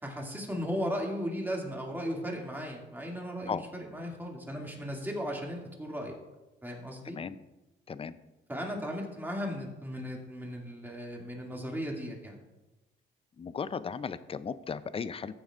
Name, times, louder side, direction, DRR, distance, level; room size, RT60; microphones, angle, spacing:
voice 1, 0.0-3.6 3.9-6.2 6.6-7.2 8.5-12.4, equal, 10° right, -1 dB, 2.3 m, -36 dB
voice 2, 7.0-7.4 7.9-8.2 13.4-15.4, left 6 dB, 30° left, 15 dB, 0.5 m, -36 dB
14.5 x 7.0 x 2.5 m, 1.0 s
cardioid pair, 90°, 20 cm